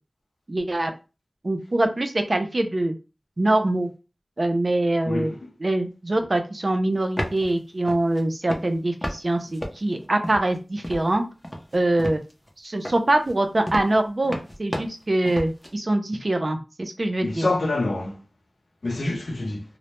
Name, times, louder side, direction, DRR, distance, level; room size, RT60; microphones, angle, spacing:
voice 1, 0.5-0.9 1.4-2.9 3.4-3.9 4.4-5.3 5.6-11.2 11.7-12.2 12.6-17.5, right 1 dB, 50° right, 0.4 m, -24 dB
voice 2, 5.1-5.4 17.2-18.2 18.8-19.6, left 2 dB, 85° left, 0.5 m, -26 dB
sound 1, 6.9-7.5 7.9-8.2 8.5-9.2 9.5-10.6 10.8-11.1 11.4-12.5 12.8-15.7, equal, 15° left, 0.5 m, -32 dB
2.1 x 2.0 x 2.9 m
wide cardioid pair, 65°, 0 cm